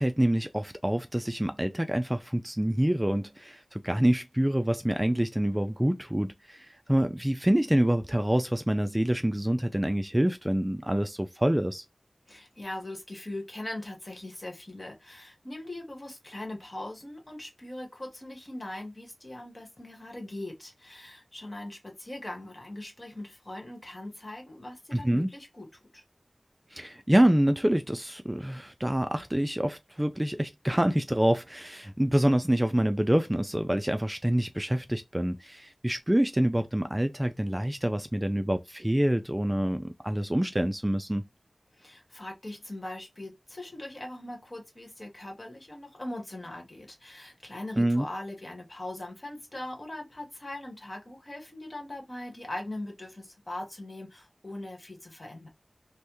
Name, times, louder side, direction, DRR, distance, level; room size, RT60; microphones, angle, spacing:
voice 1, 0.0-11.8 24.9-25.3 26.7-41.3 47.8-48.0, right 1 dB, 15° right, 0.3 m, -26 dB
voice 2, 12.3-25.7 25.9-26.0 41.8-55.5, left 1 dB, 40° left, 1.3 m, -40 dB
3.2 x 2.1 x 3.0 m
wide cardioid pair, 60°, 0 cm